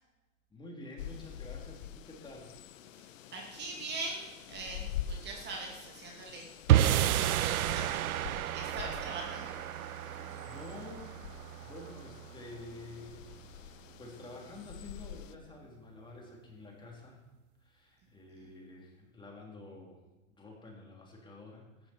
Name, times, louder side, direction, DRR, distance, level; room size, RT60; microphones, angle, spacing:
voice 1, 0.5-2.6 10.3-11.2 11.6-17.2 17.6-20.0 20.3-21.9, left 2 dB, 10° left, -1 dB, 3.3 m, -49 dB
sound 1, 1.0-15.4, left 10 dB, 65° left, 1.1 m, -46 dB
voice 2, 2.9-6.5 6.8-7.9 8.5-9.5 18.4-18.5, right 3 dB, 25° right, 0 dB, 2.4 m, -42 dB
sound 2, 6.7-13.1, right 12 dB, 85° right, 0.6 m, -31 dB
15.0 x 14.5 x 4.5 m, 1.1 s
hypercardioid pair, 135°, 42 cm